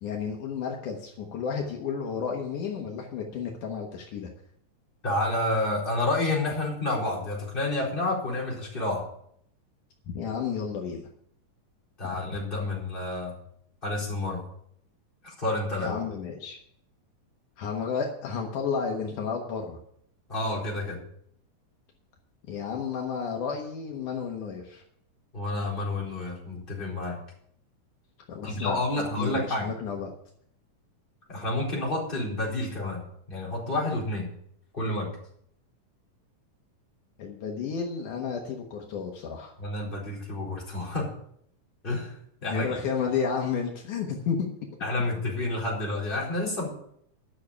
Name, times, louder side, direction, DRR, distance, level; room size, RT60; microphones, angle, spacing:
voice 1, 0.0-4.3 10.1-11.0 15.8-16.6 17.6-19.8 22.5-24.8 28.3-30.1 37.2-39.5 42.4-44.5, left 6 dB, 70° left, 1 dB, 2.8 m, -32 dB
voice 2, 5.0-9.1 12.0-13.3 13.8-14.4 15.2-16.0 20.3-21.0 25.3-27.2 28.4-29.7 31.3-34.3 34.7-35.1 39.6-41.1 41.8-42.8 44.8-46.7, left 2 dB, 15° left, -4 dB, 4.2 m, -29 dB
11.5 x 6.6 x 8.4 m, 0.69 s
omnidirectional pair, 3.8 m